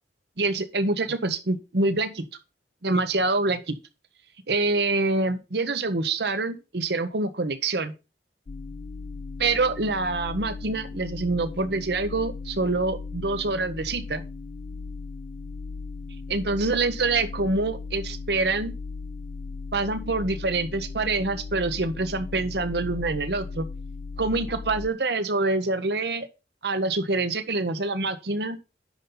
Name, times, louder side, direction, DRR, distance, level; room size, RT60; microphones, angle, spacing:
voice 1, 0.4-2.2 2.8-3.8 4.5-7.9 9.4-14.2 16.3-18.7 19.7-23.7 24.2-26.3 26.6-28.6, right 3 dB, 65° right, 0.9 m, -26 dB
sound 1, 8.5-24.9, left 4 dB, 40° left, 0.3 m, -37 dB
9.9 x 5.5 x 3.8 m
head